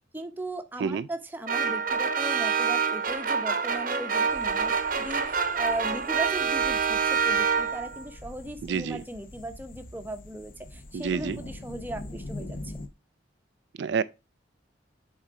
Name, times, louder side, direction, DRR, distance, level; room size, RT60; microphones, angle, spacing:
voice 1, 0.0-12.7, right 1 dB, 10° right, 0.8 m, -38 dB
sound 1, 1.5-8.0, right 5 dB, 45° right, 0.8 m, -26 dB
sound 2, 4.3-12.9, left 2 dB, 45° left, 0.7 m, -44 dB
voice 2, 8.6-9.0 10.9-11.4 13.8-14.0, right 6 dB, 70° right, 0.3 m, -28 dB
7.2 x 3.9 x 4.6 m
head